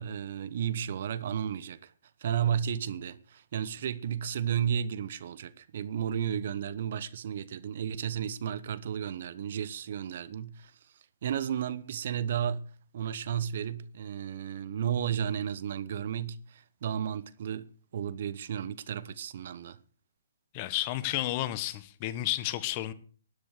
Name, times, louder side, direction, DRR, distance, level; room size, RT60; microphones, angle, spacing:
voice 1, 0.0-1.9 2.2-10.7 11.2-12.6 12.9-17.7 17.9-19.8, right 9 dB, 55° right, 1.0 m, -33 dB
voice 2, 20.5-22.9, left 15 dB, 35° left, 1.2 m, -31 dB
12.5 x 10.5 x 6.7 m
hypercardioid pair, 135°, 0 cm